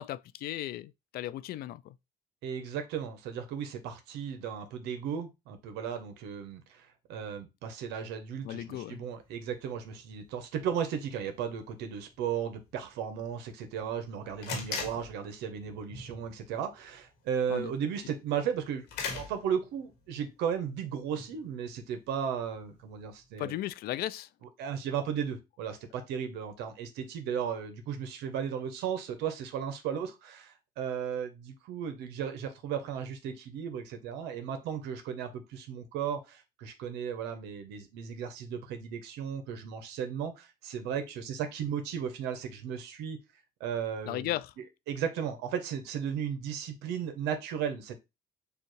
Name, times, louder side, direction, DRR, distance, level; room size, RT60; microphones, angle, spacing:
voice 1, 0.0-2.0 8.4-9.0 17.5-17.7 23.4-24.3 44.1-44.5, left 13 dB, 65° left, 0.4 m, -36 dB
voice 2, 2.4-18.9 19.1-23.5 24.6-43.2 43.6-44.3 44.9-48.0, right 8 dB, 90° right, 0.8 m, -35 dB
sound 1, 9.2-23.5, left 4 dB, 85° left, 1.8 m, -45 dB
6.8 x 2.4 x 3.1 m
cardioid pair, 110°, 17 cm